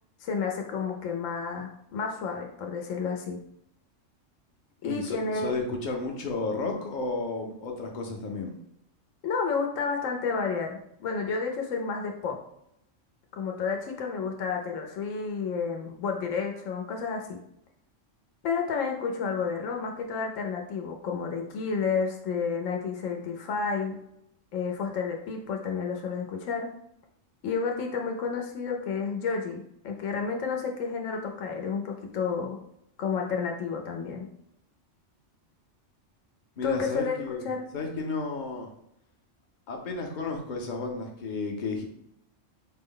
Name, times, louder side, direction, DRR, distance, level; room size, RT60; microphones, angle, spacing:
voice 1, 0.2-3.4 4.8-5.5 9.2-12.4 13.3-17.4 18.4-24.0 24.5-26.7 27.4-32.6 33.0-34.3 36.6-37.6, left 5 dB, 80° left, 2 dB, 1.0 m, -31 dB
voice 2, 4.8-8.6 36.6-38.7 39.7-41.9, left 3 dB, 45° left, 1 dB, 0.7 m, -32 dB
4.2 x 2.1 x 3.7 m, 0.77 s
omnidirectional pair, 1.3 m